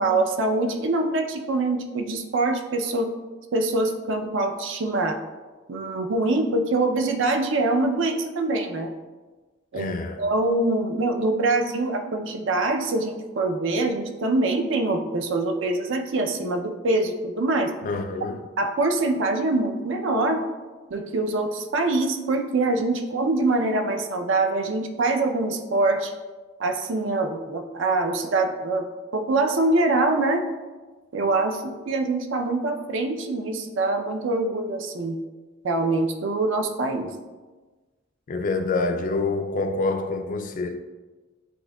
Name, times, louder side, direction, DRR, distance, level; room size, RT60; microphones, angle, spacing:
voice 1, 0.0-3.1 3.5-5.2 5.7-8.9 9.7-17.7 18.6-20.4 20.9-26.1 26.6-30.4 31.1-35.2 35.6-37.1, right 2 dB, 65° right, 0.5 m, -24 dB
voice 2, 9.7-10.2 17.8-18.4 38.3-40.8, left 3 dB, 40° left, 0.3 m, -26 dB
7.9 x 2.7 x 2.2 m
head